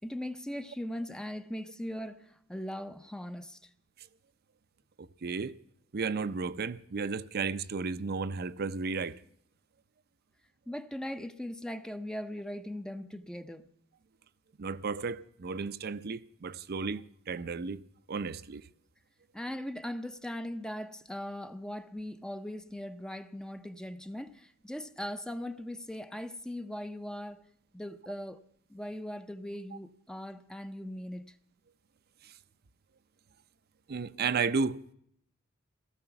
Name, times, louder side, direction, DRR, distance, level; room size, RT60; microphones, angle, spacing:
voice 1, 0.0-3.7 10.7-13.7 19.3-27.4 27.7-28.4 28.7-31.4, left 1 dB, 5° left, 0.6 m, -39 dB
voice 2, 5.0-5.6 5.9-9.2 14.6-17.8 18.1-18.6 32.2-32.3 33.9-34.9, right 4 dB, 50° right, 0.6 m, -33 dB
17.5 x 14.0 x 5.8 m
head